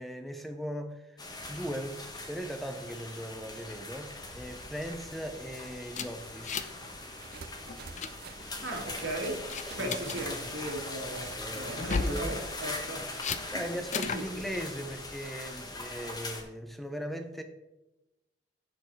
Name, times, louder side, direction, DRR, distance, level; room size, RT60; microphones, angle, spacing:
voice 1, 0.0-6.7 9.7-10.0 11.4-12.4 13.5-17.4, equal, ahead, 0.6 m, -39 dB
sound 1, 1.2-16.4, left 2 dB, 20° left, 1.3 m, -41 dB
sound 2, 5.9-6.8 7.1-7.3 7.7-8.1 8.7-9.0 9.5-10.2 11.7-12.2 13.2-13.4 13.9-14.2, left 5 dB, 40° left, 0.5 m, -33 dB
sound 3, 7.1-12.8, right 5 dB, 55° right, 0.5 m, -49 dB
voice 2, 8.4-13.1 13.5-13.6 14.1-14.2, right 1 dB, 90° right, 1.9 m, -37 dB
8.6 x 7.0 x 4.6 m
head